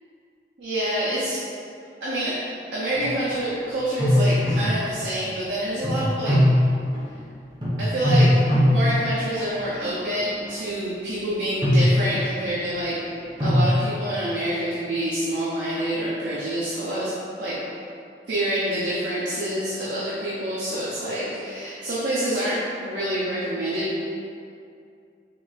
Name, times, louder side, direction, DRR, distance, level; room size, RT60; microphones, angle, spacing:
voice 1, 0.6-1.4 2.0-2.4 2.7-6.4 7.8-8.4 8.7-12.9 13.4-17.1 17.4-17.6 18.3-22.6 22.9-24.0, right 1 dB, 85° right, -9 dB, 0.7 m, -27 dB
sound 1, 2.9-3.4 4.0-5.2 5.8-7.2 7.6-9.9 10.5-10.8 11.4-12.5 13.4-13.7, left 1 dB, 25° right, 0.8 m, -21 dB
4.0 x 3.1 x 2.4 m, 2.5 s
head